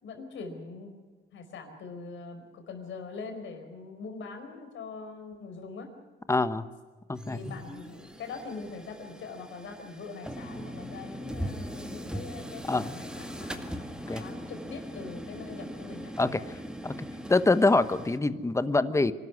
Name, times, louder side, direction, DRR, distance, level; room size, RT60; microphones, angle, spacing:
voice 1, 0.0-0.9 1.3-5.9 7.3-16.1, left 4 dB, 75° left, 5 dB, 4.8 m, -42 dB
voice 2, 6.3-6.7 7.1-7.4 12.7-12.9 14.1-14.2 16.2-16.4 16.8-16.9 17.3-19.1, left 3 dB, 15° left, 13 dB, 1.1 m, -24 dB
sound 1, 7.1-18.2, equal, 5° right, 2.1 m, -40 dB
24.5 x 13.0 x 9.6 m, 1.4 s
cardioid pair, 90°, 20 cm